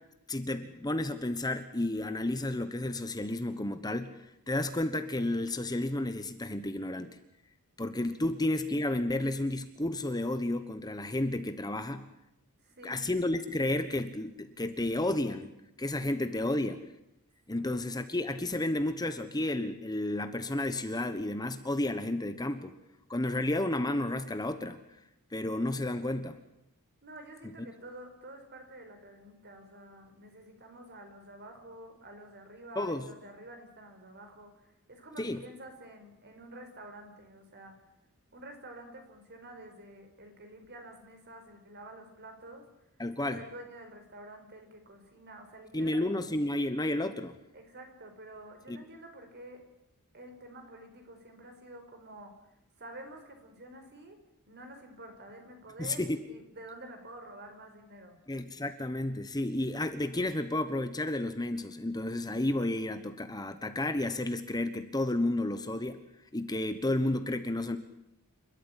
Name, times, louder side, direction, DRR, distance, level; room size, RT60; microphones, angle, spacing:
voice 1, 0.3-4.1 4.5-7.2 7.8-12.0 12.8-15.5 15.8-16.8 17.5-22.8 23.1-24.8 25.3-26.4 32.8-33.0 35.2-35.4 43.0-43.4 45.7-47.3 48.7-48.8 55.8-56.2 58.3-66.0 66.3-67.8, left 1 dB, 20° left, 9 dB, 1.2 m, -31 dB
voice 2, 12.6-13.0 17.5-17.6 27.0-37.7 38.3-42.6 43.3-46.0 47.5-49.6 50.1-52.3 52.8-54.2 54.5-58.2, right 1 dB, 50° right, 5 dB, 5.1 m, -49 dB
29.0 x 13.5 x 10.0 m, 0.86 s
head